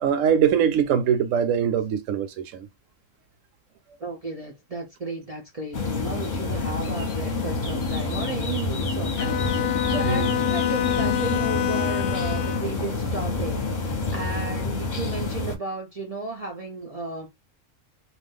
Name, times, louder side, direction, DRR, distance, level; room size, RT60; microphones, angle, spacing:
voice 1, 0.0-2.7 10.0-10.3, right 8 dB, 75° right, 0.9 m, -22 dB
voice 2, 4.0-17.3, right 3 dB, 50° right, 0.4 m, -34 dB
sound 1, 5.7-15.6, left 3 dB, 40° left, 0.9 m, -27 dB
Bowed string instrument, 9.2-12.8, left 12 dB, 70° left, 0.9 m, -27 dB
2.4 x 2.3 x 3.5 m
omnidirectional pair, 1.4 m